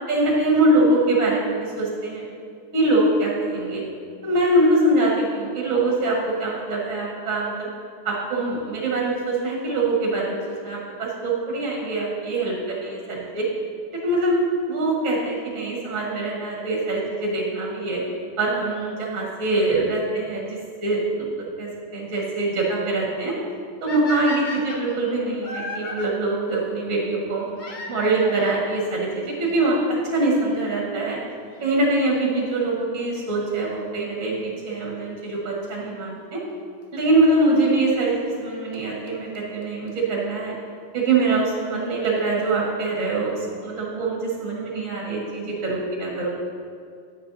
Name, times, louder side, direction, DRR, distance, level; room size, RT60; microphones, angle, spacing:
voice 1, 0.0-2.2 2.7-3.8 4.2-7.7 8.0-13.5 13.9-14.4 14.7-18.0 18.4-21.3 21.6-23.3 23.8-27.5 27.9-31.2 31.6-36.4 36.9-40.5 40.9-43.3 43.6-46.3, right 2 dB, 45° right, -3 dB, 1.7 m, -23 dB
sound 1, 23.9-26.1 27.6-28.6 29.5-29.6 30.3-30.4 30.6-30.7 32.6-32.9 35.7-35.8 36.8-36.9 38.4-38.5 38.7-38.8 39.1-39.2 39.3-39.4 39.6-39.7 39.9-40.0 40.2-40.3, left 3 dB, 80° left, 0.4 m, -35 dB
10.0 x 8.9 x 2.7 m, 2.3 s
omnidirectional pair, 2.1 m